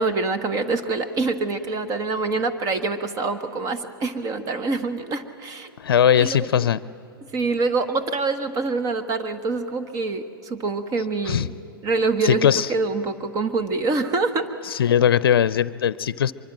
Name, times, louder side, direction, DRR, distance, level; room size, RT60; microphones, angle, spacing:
voice 1, 0.0-5.7 6.1-6.7 7.3-11.5 11.8-14.5, right 3 dB, 30° right, 12 dB, 1.4 m, -25 dB
voice 2, 5.8-6.8 11.3-11.5 12.2-12.7 14.8-16.3, left 9 dB, 70° left, 18 dB, 0.6 m, -19 dB
24.5 x 23.5 x 7.6 m, 2.8 s
hypercardioid pair, 110°, 13 cm